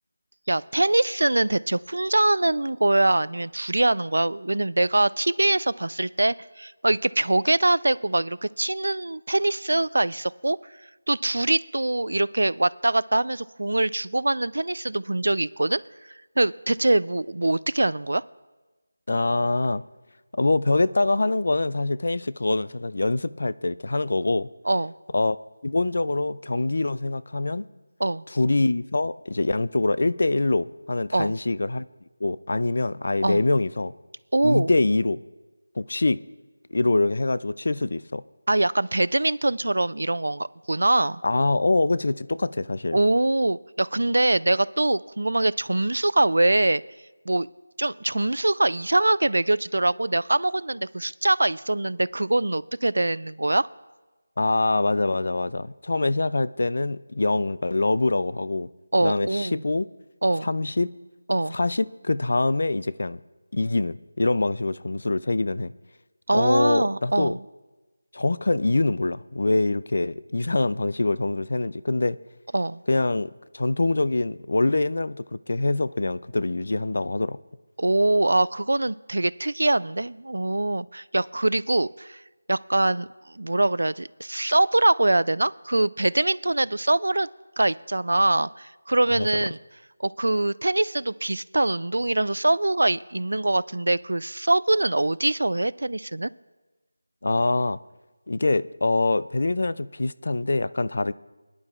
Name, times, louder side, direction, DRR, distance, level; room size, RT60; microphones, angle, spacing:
voice 1, 0.5-10.6 11.1-15.8 16.4-18.2 24.7-24.9 28.0-28.2 31.1-31.3 33.2-33.4 34.3-34.7 38.5-41.2 42.9-46.8 47.3-47.5 47.8-53.7 58.9-59.6 60.2-60.5 61.3-61.6 66.3-67.4 72.5-72.8 77.8-82.2 82.5-87.3 87.6-89.6 90.0-96.3, right 2 dB, 75° right, 0.3 m, -23 dB
voice 2, 19.1-19.8 20.3-24.5 25.1-25.4 25.6-27.6 28.3-31.9 32.2-33.9 34.4-35.2 35.8-36.2 36.7-38.2 41.2-43.0 54.4-58.7 59.0-59.9 60.4-60.9 61.5-63.2 63.5-65.7 66.3-67.3 68.1-72.2 72.9-77.4 89.2-89.3 97.2-97.8 98.3-101.1, left 2 dB, 45° left, 0.3 m, -24 dB
22.0 x 11.0 x 2.4 m
figure-of-eight pair, 180°, 0 cm